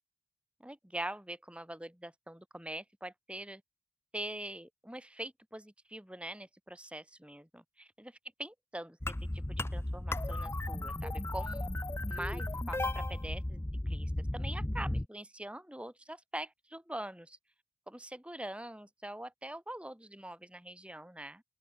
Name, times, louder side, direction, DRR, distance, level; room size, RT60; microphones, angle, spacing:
voice 1, 0.6-3.6 4.1-8.1 8.4-9.0 9.3-11.7 12.1-17.4 17.9-21.4, right 1 dB, 5° right, 2.0 m, -44 dB
sound 1, 9.0-15.1, left 1 dB, 10° left, 0.6 m, -35 dB
open air
head